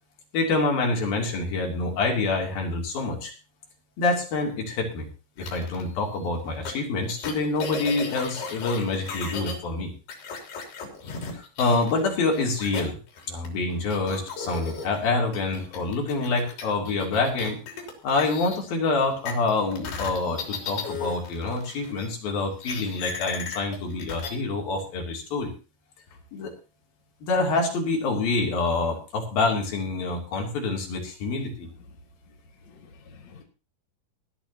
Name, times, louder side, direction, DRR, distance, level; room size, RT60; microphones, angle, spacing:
voice 1, 0.3-3.3 4.0-5.1 5.4-9.9 11.3-13.0 13.3-17.6 18.0-25.5 26.3-26.5 27.2-31.7, left 3 dB, 70° left, 4.8 m, -26 dB
sound 1, 5.4-5.8 6.7-6.8 7.1-9.5 10.1-12.1 12.3-13.5 13.9-18.6 19.3-22.1 22.6-24.3, left 5 dB, 85° left, 5.3 m, -36 dB
voice 2, 31.6-32.0 32.3-33.4, left 4 dB, 50° left, 3.0 m, -51 dB
19.5 x 12.0 x 2.9 m
omnidirectional pair, 4.4 m